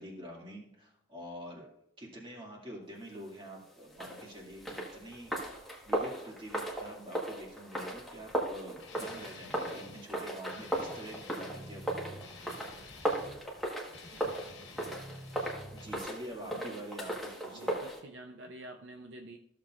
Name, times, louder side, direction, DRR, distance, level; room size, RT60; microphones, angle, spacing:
voice 1, 0.0-1.7 2.0-5.6 5.8-12.2 15.7-17.8, equal, 25° right, -1 dB, 2.2 m, -46 dB
sound 1, 3.9-18.0, right 1 dB, ahead, 1.4 m, -37 dB
Guitar, 8.8-10.1 10.5-13.4 13.9-16.0, left 2 dB, 65° left, 1.4 m, -49 dB
voice 2, 16.3-16.8 17.5-19.4, right 1 dB, 65° right, 4 dB, 0.6 m, -48 dB
14.5 x 6.8 x 2.5 m, 0.77 s
head